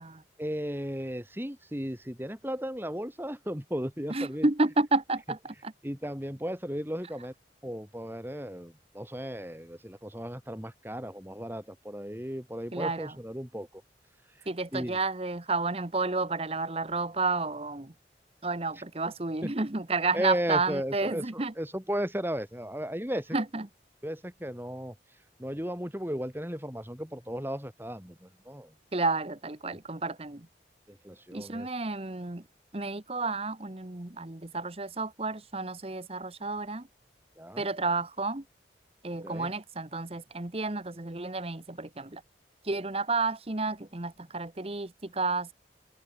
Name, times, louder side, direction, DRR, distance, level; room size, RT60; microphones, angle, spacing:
voice 1, 0.4-4.5 5.8-7.3 7.6-13.8 14.7-15.0 19.4-19.5 20.1-23.4 24.0-24.9 25.4-28.7 30.9-31.7 37.4-37.6 39.2-39.5, equal, 10° right, 4.9 m, -35 dB
voice 2, 4.1-5.7 12.7-13.2 14.5-17.9 18.4-21.5 23.3-23.7 28.9-30.5 31.3-32.4 32.7-36.9 37.6-38.4 39.0-42.2 42.6-45.5, right 3 dB, 35° right, 1.1 m, -31 dB
open air
head